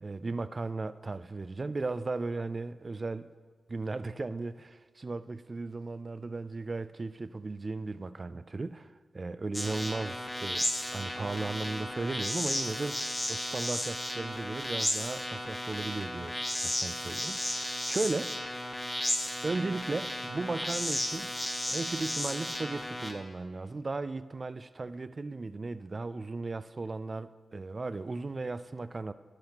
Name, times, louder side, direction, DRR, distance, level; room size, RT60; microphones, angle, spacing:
voice 1, 0.0-3.3 3.7-8.9 9.1-10.7 10.9-13.0 13.3-16.4 16.6-18.3 19.4-21.4 21.7-29.1, right 3 dB, 40° right, 0.3 m, -36 dB
sound 1, 9.5-23.1, left 1 dB, 15° left, 1.2 m, -34 dB
11.5 x 8.7 x 2.9 m
cardioid pair, 60°, 0 cm